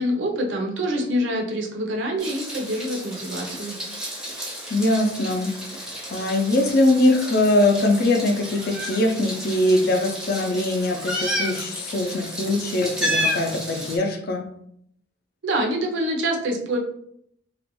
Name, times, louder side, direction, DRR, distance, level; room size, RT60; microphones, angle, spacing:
voice 1, 0.0-3.8 15.4-16.8, equal, 90° right, 1 dB, 0.6 m, -26 dB
Meow, 2.2-14.0, equal, 5° right, 0.5 m, -32 dB
voice 2, 4.7-14.4, left 1 dB, 55° left, 4 dB, 0.4 m, -22 dB
2.3 x 2.2 x 3.0 m, 0.70 s
head